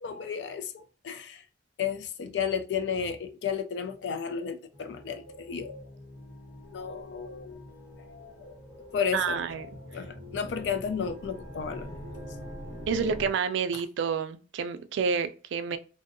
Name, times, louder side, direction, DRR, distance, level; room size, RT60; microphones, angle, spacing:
voice 1, 0.0-1.5 1.8-5.9 6.7-7.7 8.0-12.2 13.7-13.8, left 6 dB, 65° left, 0.3 m, -33 dB
sound 1, 4.7-13.3, left 1 dB, 85° left, 0.8 m, -44 dB
voice 2, 9.1-9.7 12.9-15.8, right 6 dB, 85° right, 0.3 m, -29 dB
2.6 x 2.0 x 2.5 m
head